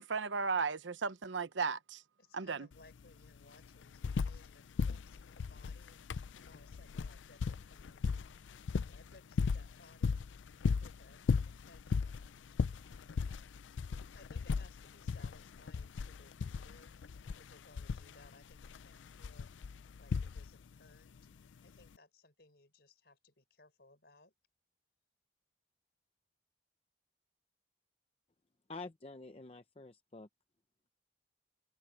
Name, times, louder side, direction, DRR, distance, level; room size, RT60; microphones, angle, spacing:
voice 1, 0.0-2.0 2.3-2.7, right 5 dB, 85° right, 0.9 m, -35 dB
voice 2, 2.2-8.4 8.9-10.3 10.8-12.8 14.1-16.9 17.4-19.5 20.0-24.3, left 2 dB, 60° left, 5.8 m, -63 dB
sound 1, 2.7-2.8 3.1-4.5 4.8-20.7 21.8-21.9, left 5 dB, 85° left, 0.4 m, -37 dB
voice 3, 28.7-30.3, left 3 dB, 30° left, 0.7 m, -48 dB
head